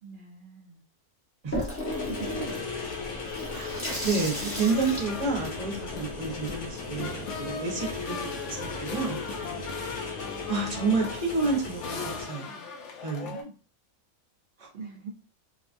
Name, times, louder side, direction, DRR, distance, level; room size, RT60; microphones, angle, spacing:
voice 1, 0.0-0.8 2.1-2.4 9.3-9.7 13.2-13.5 14.7-15.1, right 4 dB, 85° right, 0 dB, 0.4 m, -42 dB
Water tap faucet / Sink (filling or washing), 1.5-6.7, equal, 15° left, 0.5 m, -35 dB
sound 1, 1.9-12.3, left 4 dB, 80° left, 1.3 m, -37 dB
voice 2, 3.5-9.2 10.5-12.5 13.0-13.3 14.6-14.7, right 4 dB, 35° right, -1 dB, 0.6 m, -30 dB
sound 2, 3.6-13.4, left 4 dB, 65° left, 0.8 m, -39 dB
3.0 x 2.3 x 2.5 m, 0.35 s
omnidirectional pair, 1.5 m